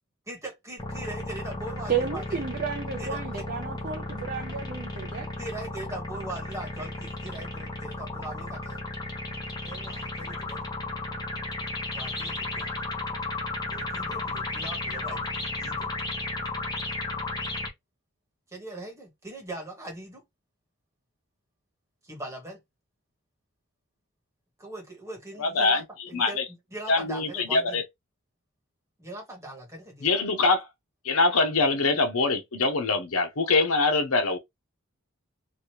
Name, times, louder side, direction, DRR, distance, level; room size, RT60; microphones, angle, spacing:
voice 1, 0.3-2.2 3.0-3.2 5.4-8.8 9.6-10.6 11.9-12.8 13.7-15.9 18.5-20.2 22.0-22.6 24.6-27.8 29.0-30.1, right 1 dB, 15° right, 1.4 m, -40 dB
sound 1, 0.8-17.7, left 2 dB, 20° left, 0.8 m, -34 dB
voice 2, 1.9-5.3, right 6 dB, 40° right, 0.5 m, -32 dB
voice 3, 25.4-26.5 26.9-27.8 30.0-30.7 31.0-34.4, left 3 dB, 75° left, 0.9 m, -24 dB
3.1 x 2.5 x 2.9 m
head